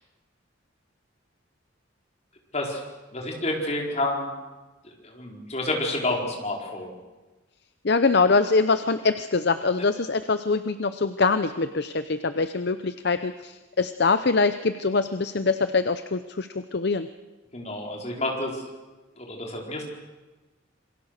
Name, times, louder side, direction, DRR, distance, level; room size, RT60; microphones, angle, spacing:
voice 1, 3.1-4.3 5.0-6.9 17.5-18.6 19.2-19.8, left 2 dB, 35° left, 0 dB, 4.4 m, -29 dB
voice 2, 7.8-17.1, left 4 dB, 55° left, 11 dB, 0.7 m, -24 dB
27.5 x 22.5 x 6.6 m, 1.2 s
head